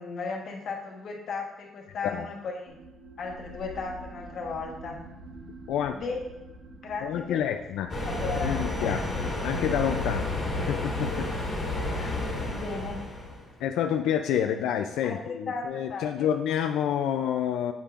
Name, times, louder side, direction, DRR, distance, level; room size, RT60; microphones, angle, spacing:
voice 1, 0.0-2.8 3.2-5.0 5.9-6.2 6.8-7.4 8.0-9.3 11.9-13.0 14.3-14.5 15.0-16.3, left 4 dB, 45° left, 1 dB, 1.3 m, -36 dB
sound 1, 2.7-13.8, right 1 dB, 60° right, 1.2 m, -48 dB
voice 2, 7.0-7.9 8.4-9.2 9.4-10.3 10.7-11.3 12.0-12.1 13.6-17.7, left 9 dB, 90° left, 6 dB, 0.4 m, -28 dB
sound 2, 7.9-13.5, left 2 dB, 25° left, 1.9 m, -31 dB
10.0 x 7.3 x 2.5 m, 0.96 s
cardioid pair, 180°, 0 cm